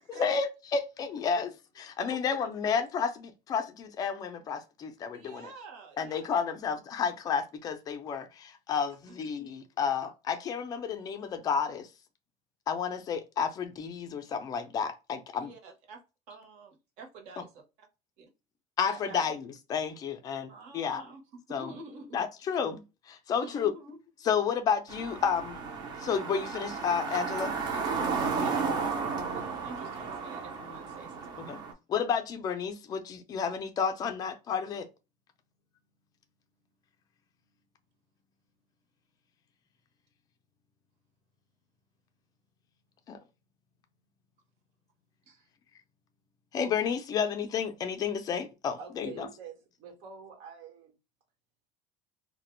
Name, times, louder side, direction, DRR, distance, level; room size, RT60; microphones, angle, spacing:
voice 1, 0.1-5.5 6.0-11.9 12.7-15.5 18.8-21.0 21.5-21.7 22.1-23.7 24.2-25.6 26.0-27.5 31.4-31.6 31.9-34.9 43.1-43.2 46.5-49.3, left 6 dB, 25° left, 0.4 m, -31 dB
voice 2, 2.0-2.5 5.1-6.4 9.1-9.2 15.3-16.0 16.3-17.4 18.8-19.3 20.5-22.2 23.4-24.0 28.0-31.5 45.3-45.5, right 3 dB, 50° right, 0.8 m, -48 dB
sound 1, 24.9-31.7, right 5 dB, 30° right, 0.5 m, -33 dB
voice 3, 48.8-51.0, right 6 dB, 75° right, 1.0 m, -46 dB
2.4 x 2.1 x 3.0 m
cardioid pair, 180°, 15 cm